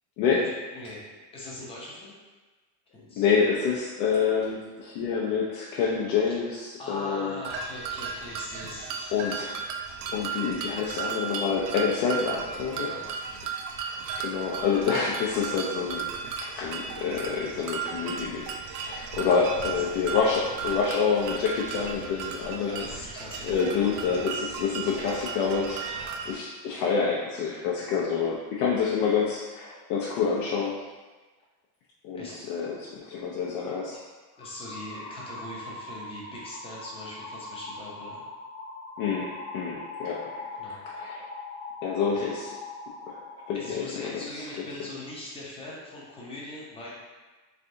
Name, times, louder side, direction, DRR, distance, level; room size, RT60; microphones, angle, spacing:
voice 1, 0.7-1.1 1.3-2.1 2.9-3.3 6.2-9.5 12.7-13.1 19.6-20.1 22.6-23.6 32.1-32.4 34.4-38.2 40.6-40.8 42.1-42.3 43.5-46.9, left 1 dB, 15° left, -5 dB, 0.5 m, -41 dB
voice 2, 3.2-7.4 9.1-9.6 10.1-12.9 13.9-16.1 16.4-18.5 18.8-22.9 23.4-30.7 32.0-34.0 39.0-41.3 41.8-42.5 43.1-43.2 43.5-44.4, left 6 dB, 85° left, -4 dB, 0.7 m, -27 dB
sound 1, 7.4-26.3, right 6 dB, 80° right, 0.6 m, -35 dB
sound 2, 34.3-43.7, left 3 dB, 45° left, 1.0 m, -41 dB
3.7 x 3.3 x 2.6 m, 1.3 s
cardioid pair, 175°, 43 cm